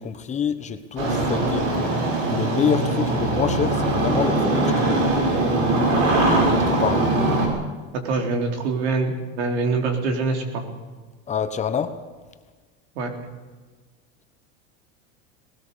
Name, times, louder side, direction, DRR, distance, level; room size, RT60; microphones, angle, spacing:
voice 1, 0.0-1.7 2.3-5.2 6.4-7.1 11.3-12.0, left 7 dB, 20° left, 9 dB, 1.1 m, -26 dB
Engine starting, 1.0-7.5, right 2 dB, 55° right, 6.1 m, -21 dB
voice 2, 8.0-10.6 13.0-13.1, right 3 dB, 85° right, 3 dB, 4.0 m, -24 dB
19.5 x 19.0 x 6.9 m, 1.4 s
supercardioid pair, 145°, 32 cm